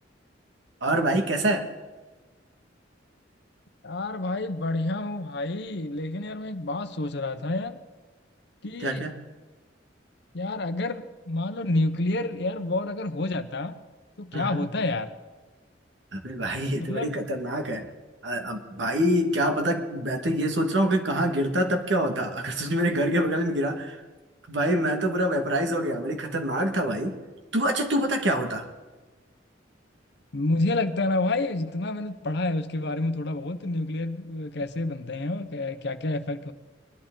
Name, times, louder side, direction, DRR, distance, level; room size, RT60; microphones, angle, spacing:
voice 1, 0.8-1.7 8.8-9.1 14.3-14.7 16.1-17.9 18.2-24.0 24.5-27.2 27.5-28.7, right 1 dB, 70° right, 4 dB, 1.7 m, -26 dB
voice 2, 3.8-7.8 8.6-9.1 10.3-13.8 14.2-15.1 16.8-17.1 30.3-36.5, left 2 dB, 60° left, 10 dB, 0.8 m, -29 dB
22.0 x 11.5 x 3.8 m, 1.3 s
head